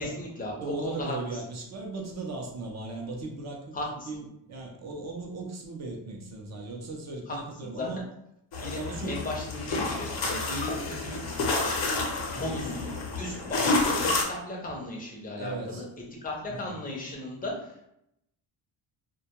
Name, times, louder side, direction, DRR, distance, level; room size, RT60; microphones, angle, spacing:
voice 1, 0.0-1.2 3.7-4.1 7.3-7.9 8.6-8.8 9.1-11.2 12.4-15.9 16.2-17.9, left 1 dB, 20° left, -2 dB, 0.5 m, -36 dB
voice 2, 0.6-3.7 4.1-8.0 8.7-9.2 9.7-9.9 12.3-12.5 15.4-15.8 16.5-16.7, right 3 dB, 40° right, 1 dB, 0.5 m, -37 dB
sound 1, 8.5-14.2, left 3 dB, 70° left, 0.7 m, -29 dB
2.2 x 2.1 x 2.9 m, 0.79 s
cardioid pair, 150°, 44 cm